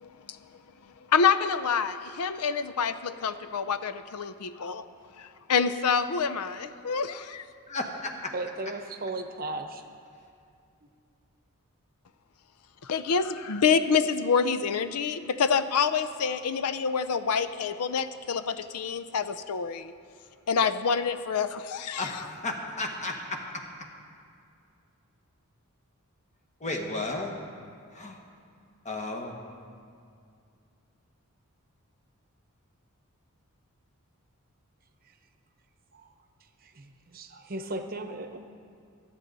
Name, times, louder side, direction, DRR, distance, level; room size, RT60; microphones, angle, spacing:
voice 1, 0.0-0.4 1.1-4.8 5.2-7.4 12.8-19.9 20.5-22.0, left 6 dB, 90° left, 12 dB, 0.5 m, -27 dB
voice 2, 7.7-8.3 22.0-23.9 26.6-27.4 27.9-28.2 28.8-29.4, left 2 dB, 30° left, 2 dB, 1.4 m, -34 dB
voice 3, 8.3-9.8 35.9-36.1 36.6-38.4, right 2 dB, 40° right, 7 dB, 0.8 m, -36 dB
25.5 x 8.9 x 4.0 m, 2.4 s
head